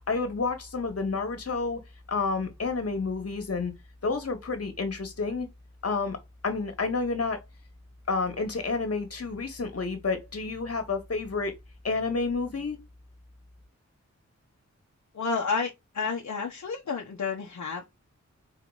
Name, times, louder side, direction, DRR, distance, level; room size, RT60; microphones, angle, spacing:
voice 1, 0.1-1.8 2.1-3.7 4.0-5.5 5.8-6.2 6.4-7.4 8.1-11.5 11.8-12.8, left 4 dB, 55° left, 1.8 m, -29 dB
voice 2, 15.1-17.8, left 5 dB, 70° left, 1.2 m, -30 dB
4.9 x 3.9 x 4.9 m
wide cardioid pair, 100°, 29 cm